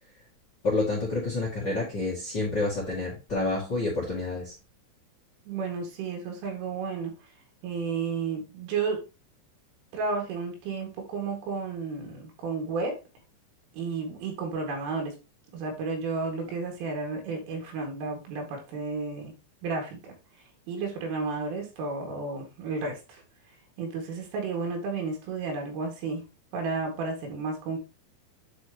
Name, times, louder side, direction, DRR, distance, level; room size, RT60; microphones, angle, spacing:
voice 1, 0.6-4.5, left 2 dB, 35° left, -3 dB, 1.8 m, -28 dB
voice 2, 5.5-7.1 7.6-9.0 9.9-13.0 13.7-15.1 15.5-19.3 19.6-20.2 20.7-23.2 23.8-26.2 26.5-27.8, right 4 dB, 90° right, 2 dB, 4.7 m, -32 dB
9.5 x 4.8 x 3.0 m, 0.30 s
omnidirectional pair, 5.6 m